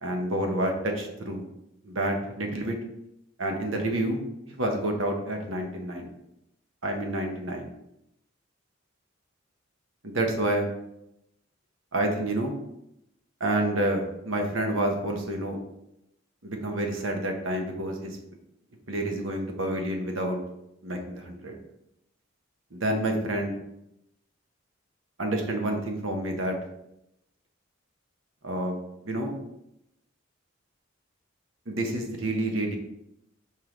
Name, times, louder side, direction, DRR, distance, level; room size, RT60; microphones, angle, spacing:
voice 1, 0.0-1.4 1.8-2.7 3.4-4.2 4.5-6.1 6.8-7.7 10.0-10.7 11.9-12.5 13.4-15.6 16.4-18.2 18.9-20.4 20.8-21.6 22.7-23.6 25.2-26.6 28.4-28.8 29.0-29.3 31.7-32.8, right 1 dB, 80° right, 2 dB, 1.2 m, -28 dB
5.5 x 4.7 x 3.9 m, 0.83 s
head